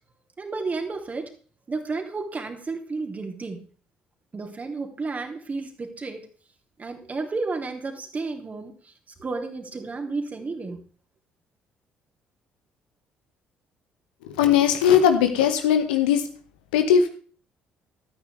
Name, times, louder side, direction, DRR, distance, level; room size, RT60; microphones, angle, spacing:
voice 1, 0.4-1.3 1.7-3.6 4.3-6.2 6.8-8.9 9.2-10.8, right 3 dB, 30° right, 3.4 m, -32 dB
voice 2, 14.4-16.2 16.7-17.1, left 8 dB, 75° left, 1.6 m, -19 dB
15.0 x 13.5 x 3.5 m
figure-of-eight pair, 50°, 5 cm